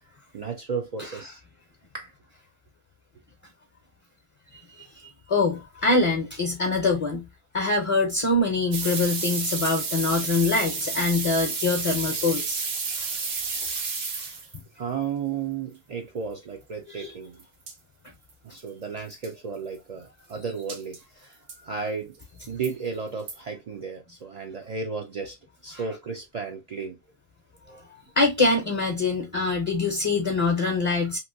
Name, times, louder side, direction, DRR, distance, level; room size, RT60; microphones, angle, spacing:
voice 1, 0.3-1.4 1.9-2.1 14.8-17.4 18.4-22.1 22.5-25.4 25.6-27.0 27.7-27.8, right 5 dB, 50° right, 0.5 m, -33 dB
voice 2, 4.5-7.2 7.5-12.6 16.9-17.1 25.7-25.8 28.2-31.2, left 3 dB, 35° left, 0.6 m, -24 dB
sound 1, 8.7-14.6 17.4-17.5 17.7-17.8 18.3-18.4 18.6-18.7 19.1-19.3 20.7-21.0 21.5-21.6 22.2-22.7 23.3-23.4, right 4 dB, 75° right, 1.0 m, -31 dB
3.0 x 2.5 x 2.5 m
omnidirectional pair, 1.0 m